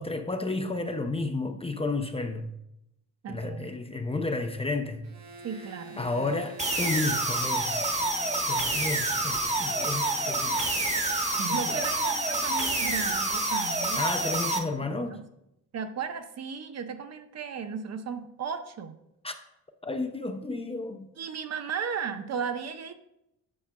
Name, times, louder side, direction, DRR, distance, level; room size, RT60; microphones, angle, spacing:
voice 1, 0.0-2.5 3.3-5.1 6.0-8.1 8.4-10.6 11.5-11.8 13.9-15.2 19.2-19.3 19.8-21.1, left 3 dB, 15° left, 0.5 m, -32 dB
voice 2, 3.2-3.7 5.4-6.4 11.4-14.1 14.8-15.3 15.7-18.9 21.2-22.9, right 6 dB, 45° right, 0.7 m, -35 dB
sound 1, 5.0-13.2, right 2 dB, 85° right, 1.4 m, -49 dB
sound 2, 6.6-14.6, right 2 dB, 20° right, 1.0 m, -28 dB
8.4 x 5.6 x 2.3 m
supercardioid pair, 75°, 35 cm